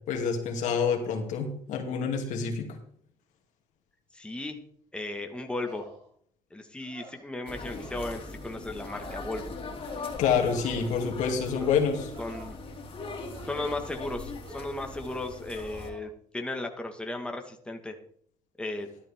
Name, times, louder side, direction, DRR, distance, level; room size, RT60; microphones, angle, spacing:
voice 1, 0.1-2.7 10.2-12.1, left 6 dB, 75° left, 3 dB, 2.5 m, -27 dB
voice 2, 4.1-4.6 4.9-5.9 6.5-9.5 11.6-11.7 12.2-12.6 13.5-18.0 18.6-18.9, left 2 dB, 10° left, 4 dB, 1.6 m, -35 dB
sound 1, 5.6-6.1 6.8-7.3 7.7-8.0 8.8-9.5 9.9-10.2 11.1-11.4 12.1-12.5 13.3-14.0 14.4-14.9 15.5-16.1, right 3 dB, 85° right, 4.8 m, -49 dB
sound 2, 7.5-15.9, left 3 dB, 45° left, 2.7 m, -40 dB
12.0 x 11.0 x 3.6 m, 0.62 s
supercardioid pair, 80°, 13 cm